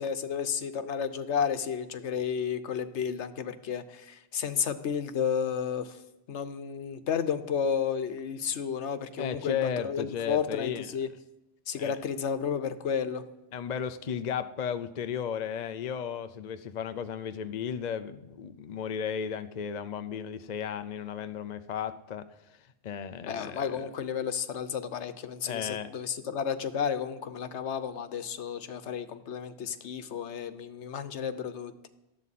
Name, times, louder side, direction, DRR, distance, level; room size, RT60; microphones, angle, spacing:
voice 1, 0.0-6.0 6.3-11.1 11.7-13.2 23.3-31.7, left 7 dB, 85° left, 11 dB, 1.2 m, -32 dB
voice 2, 9.2-10.9 11.8-12.0 13.5-22.2 22.8-23.9 25.4-25.9, left 7 dB, 45° left, 10 dB, 0.6 m, -34 dB
18.5 x 13.5 x 4.2 m, 0.94 s
omnidirectional pair, 1.1 m